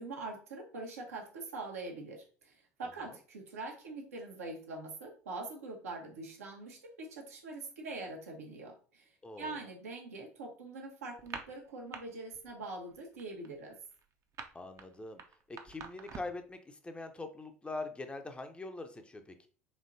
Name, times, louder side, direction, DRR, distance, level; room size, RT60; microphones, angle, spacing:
voice 1, 0.0-13.8, right 3 dB, 75° right, 0 dB, 1.0 m, -44 dB
voice 2, 9.2-9.6 14.5-15.2 15.5-19.5, left 2 dB, 15° left, 7 dB, 0.6 m, -43 dB
sound 1, 11.2-12.0 12.3-12.6 12.9-16.5, right 6 dB, 40° right, 0.6 m, -46 dB
4.3 x 2.9 x 2.6 m, 0.41 s
figure-of-eight pair, 70°, 8 cm